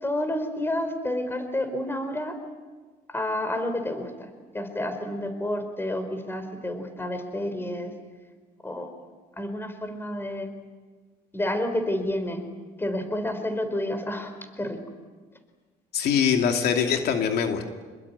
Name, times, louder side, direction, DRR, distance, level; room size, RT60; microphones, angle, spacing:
voice 1, 0.0-2.4 3.1-4.1 4.5-7.9 8.6-8.9 9.4-10.5 11.3-12.4 12.8-14.3 14.6-14.8, left 1 dB, 15° left, 8 dB, 4.7 m, -29 dB
voice 2, 15.9-17.6, left 7 dB, 70° left, 4 dB, 2.7 m, -23 dB
27.0 x 21.5 x 9.7 m, 1.4 s
cardioid pair, 110°, 17 cm